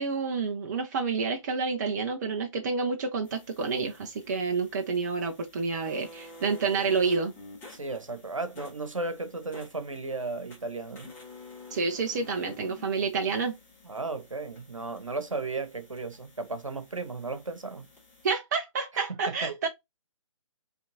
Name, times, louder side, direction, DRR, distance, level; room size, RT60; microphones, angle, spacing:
voice 1, 0.0-7.3 11.7-13.5 18.2-19.7, right 4 dB, 35° right, 0.7 m, -29 dB
sound 1, 3.2-18.3, left 2 dB, 15° left, 1.9 m, -51 dB
voice 2, 7.7-11.1 13.8-17.9 19.4-19.5, right 3 dB, 75° right, 1.2 m, -35 dB
5.6 x 3.3 x 2.7 m
figure-of-eight pair, 135°, 17 cm